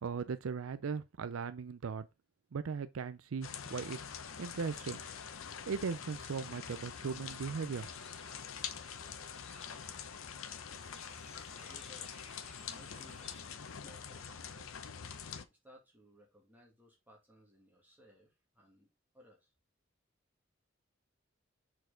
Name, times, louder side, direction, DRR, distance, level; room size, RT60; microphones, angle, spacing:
voice 1, 0.0-2.1 2.5-4.0 4.4-5.0 5.7-7.9, right 5 dB, 80° right, 0.5 m, -38 dB
sound 1, 3.4-15.5, left 7 dB, 85° left, 0.8 m, -45 dB
Bird, 7.7-13.4, left 3 dB, 30° left, 1.7 m, -58 dB
voice 2, 11.5-13.4 13.8-14.7 15.5-18.9 19.1-19.5, equal, 10° right, 2.1 m, -61 dB
6.4 x 4.5 x 3.8 m
head